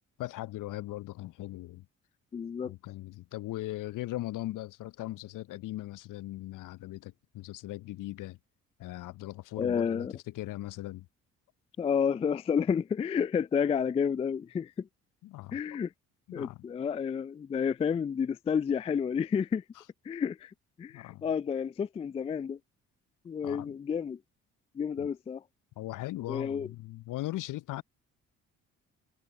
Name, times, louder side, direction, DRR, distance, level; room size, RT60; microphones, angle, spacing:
voice 1, 0.2-1.9 2.6-8.4 8.8-11.1 15.2-15.6 16.3-16.6 20.9-21.2 23.4-23.7 25.0-25.1 25.8-27.8, left 16 dB, 55° left, 0.6 m, -39 dB
voice 2, 2.3-2.7 9.6-10.1 11.8-14.9 15.5-15.9 16.3-19.6 20.0-22.6 23.2-24.2 24.7-25.4 26.3-26.7, left 7 dB, 15° left, 0.3 m, -30 dB
hypercardioid pair, 45°, 39 cm